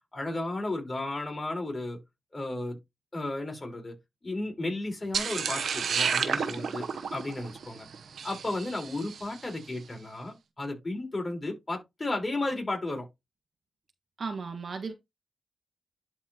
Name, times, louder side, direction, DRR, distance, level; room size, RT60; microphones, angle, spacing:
voice 1, 0.1-2.0 2.3-2.8 3.1-7.8 8.2-13.1, left 2 dB, 30° left, 4.3 m, -34 dB
sound 1, 5.1-9.4, right 6 dB, 80° right, 0.9 m, -31 dB
voice 2, 14.2-14.9, right 4 dB, 60° right, 1.5 m, -35 dB
11.5 x 4.5 x 2.9 m
cardioid pair, 65°, 0 cm